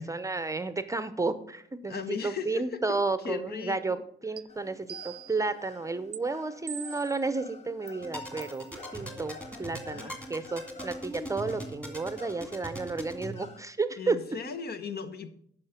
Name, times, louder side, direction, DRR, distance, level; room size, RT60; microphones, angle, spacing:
voice 1, 0.0-4.0 4.2-8.7 8.9-14.2, right 3 dB, 15° right, 12 dB, 0.7 m, -32 dB
voice 2, 1.9-2.8 3.2-4.0 9.9-10.5 14.0-15.3, left 6 dB, 55° left, 10 dB, 1.0 m, -37 dB
sound 1, 4.4-4.5 4.9-5.5 6.1-6.2 6.7-7.2 7.9-8.0 8.4-8.6, right 13 dB, 55° right, 0.6 m, -42 dB
sound 2, 4.5-13.6, left 3 dB, 35° left, 1.1 m, -51 dB
sound 3, 8.0-13.3, equal, 5° left, 2.1 m, -41 dB
10.5 x 5.6 x 5.8 m, 0.67 s
cardioid pair, 90°, 20 cm